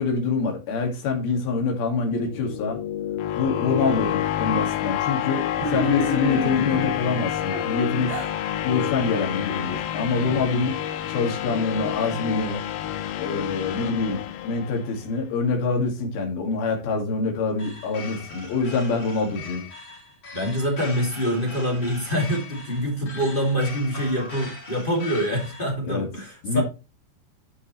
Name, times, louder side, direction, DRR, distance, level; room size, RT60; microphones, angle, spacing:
voice 1, 0.0-2.8 3.4-8.2 8.6-10.8 11.1-12.6 13.2-19.7 25.8-26.1 26.4-26.6, left 4 dB, 65° left, 3.8 m, -25 dB
sound 1, 2.1-15.1, left 11 dB, 85° left, 3.3 m, -28 dB
sound 2, 5.5-6.9 7.5-8.4, right 1 dB, 75° right, 7.9 m, -29 dB
sound 3, 17.6-25.7, left 3 dB, 45° left, 5.4 m, -40 dB
voice 2, 20.3-26.6, equal, 20° left, 1.5 m, -25 dB
14.5 x 5.5 x 3.1 m
omnidirectional pair, 5.0 m